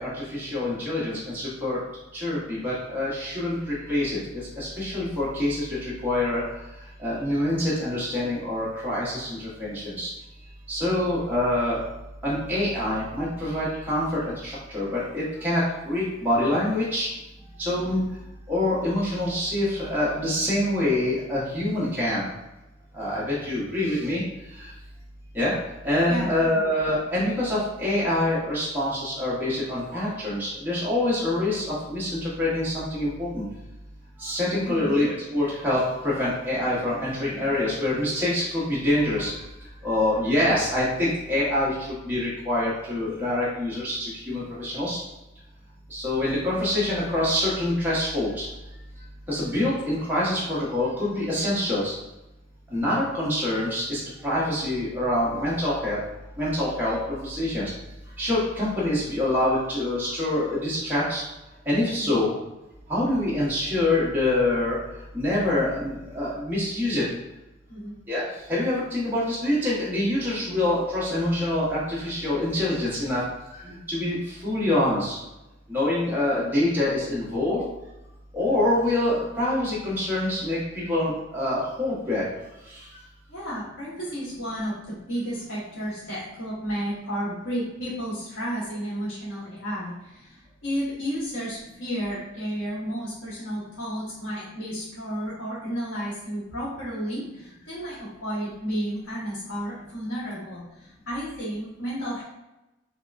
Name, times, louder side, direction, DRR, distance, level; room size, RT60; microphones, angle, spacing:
voice 1, 0.0-1.8 2.1-6.4 7.0-10.1 10.7-11.8 12.2-17.1 17.6-18.0 18.5-22.3 22.9-24.2 24.5-24.7 25.3-25.5 25.8-33.5 34.2-39.4 39.8-41.7 42.0-45.0 45.9-48.5 49.3-51.9 52.7-56.0 56.4-57.7 58.2-61.2 61.6-62.3 62.9-64.8 65.1-67.1 68.1-68.2 68.5-75.2 75.7-77.6 78.3-82.3 82.6-82.9, left 1 dB, 10° right, -9 dB, 1.1 m, -25 dB
voice 2, 26.1-26.7 34.7-35.0 61.9-62.2 67.7-68.0 83.3-102.2, equal, 90° left, -9 dB, 1.3 m, -32 dB
5.5 x 2.2 x 2.5 m, 0.96 s
head